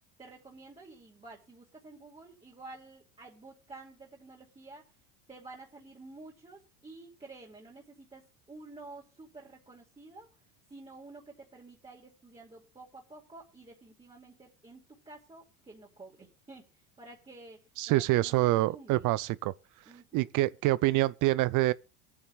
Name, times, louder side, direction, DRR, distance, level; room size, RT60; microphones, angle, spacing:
voice 1, 0.2-4.8 5.3-10.4 10.7-17.6 17.9-19.1 19.9-20.3, right 3 dB, 15° right, 2.7 m, -51 dB
voice 2, 17.8-19.5 20.1-21.7, right 18 dB, 45° right, 0.6 m, -26 dB
23.5 x 9.5 x 2.4 m
supercardioid pair, 95°, 43 cm